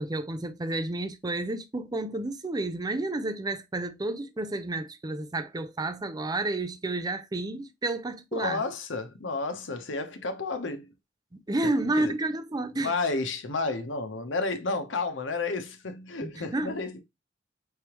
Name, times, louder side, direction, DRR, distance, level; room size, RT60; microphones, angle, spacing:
voice 1, 0.0-8.6 11.5-12.9 16.2-16.8, right 2 dB, 20° right, 0.5 m, -31 dB
voice 2, 8.3-10.9 11.8-12.1 12.8-17.0, left 3 dB, 90° left, 0.9 m, -31 dB
4.7 x 3.4 x 2.9 m
head